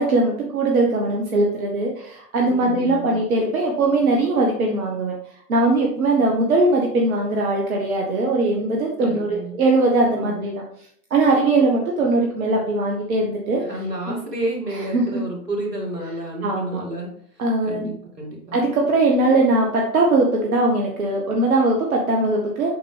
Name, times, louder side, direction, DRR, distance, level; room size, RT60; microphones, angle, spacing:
voice 1, 0.0-5.1 5.5-10.5 11.1-13.6 14.1-14.2 14.9-15.2 16.4-16.8 17.4-17.9 18.5-22.7, right 2 dB, 60° right, 0 dB, 1.3 m, -20 dB
voice 2, 2.4-3.2 9.0-9.6 10.1-10.5 13.6-18.6, right 1 dB, 80° right, -1 dB, 2.5 m, -31 dB
7.6 x 5.2 x 3.4 m, 0.63 s
figure-of-eight pair, 110°, 47 cm